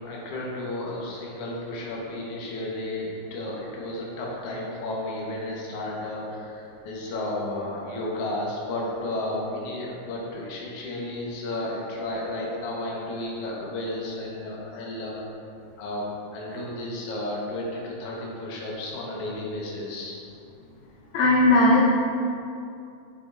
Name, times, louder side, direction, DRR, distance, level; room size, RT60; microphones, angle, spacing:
voice 1, 0.0-15.2 15.8-16.0 16.3-20.1, left 1 dB, 60° left, -4 dB, 1.7 m, -33 dB
voice 2, 21.1-21.8, left 2 dB, 75° left, -3 dB, 1.7 m, -17 dB
7.4 x 7.3 x 2.5 m, 2.6 s
omnidirectional pair, 3.8 m